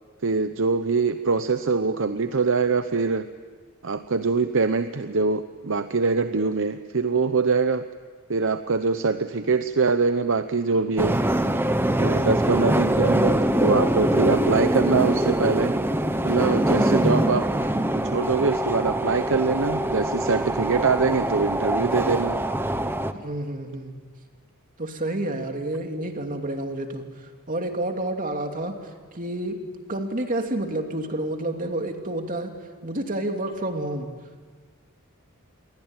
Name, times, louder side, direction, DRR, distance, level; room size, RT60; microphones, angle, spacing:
voice 1, 0.2-3.3 3.8-7.8 8.3-11.2 12.0-15.7 16.2-17.5 18.0-22.4, right 4 dB, 60° right, 10 dB, 0.8 m, -23 dB
sound 1, 11.0-23.1, right 1 dB, 10° right, 1.1 m, -23 dB
voice 2, 23.1-24.0 24.8-27.0 27.5-28.8 29.1-32.5 32.8-34.1, right 1 dB, 35° right, 4 dB, 2.8 m, -29 dB
28.0 x 22.5 x 9.0 m, 1.5 s
head